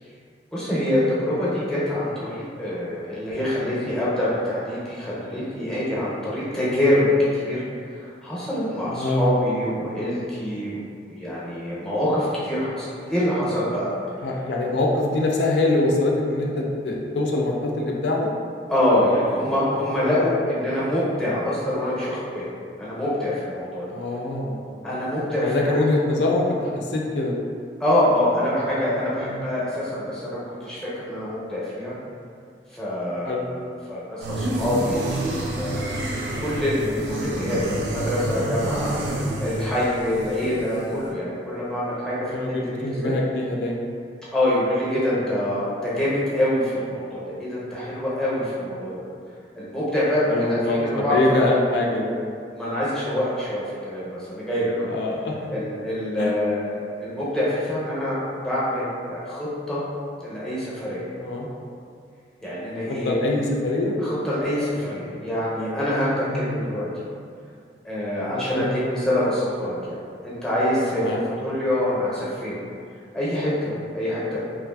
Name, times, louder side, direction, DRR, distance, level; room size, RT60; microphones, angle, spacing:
voice 1, 0.5-7.6 7.9-10.8 11.1-13.9 14.2-14.3 18.7-22.4 22.8-23.8 24.8-25.8 27.8-31.9 32.7-35.1 35.6-35.9 36.4-37.6 37.9-38.9 39.4-42.4 42.9-43.1 44.3-49.0 49.6-51.4 52.5-54.9 55.5-58.2 58.4-59.8 60.2-61.1 62.4-63.2 64.0-67.1 67.8-70.0 70.2-71.1 71.4-72.6 73.1-74.4, left 1 dB, 5° left, -9 dB, 0.5 m, -25 dB
voice 2, 8.9-9.4 14.2-18.3 20.0-20.3 23.9-24.6 25.4-27.3 29.3-29.4 33.2-33.5 38.9-39.2 42.3-43.9 48.8-48.9 50.3-52.2 54.9-55.3 56.2-56.3 61.2-61.5 62.9-63.9 66.2-66.6 68.3-68.9 70.9-71.2, left 2 dB, 75° left, -1 dB, 0.3 m, -24 dB
sound 1, 34.2-41.1, right 1 dB, 80° right, 0.4 m, -28 dB
2.8 x 2.4 x 2.2 m, 2.3 s
head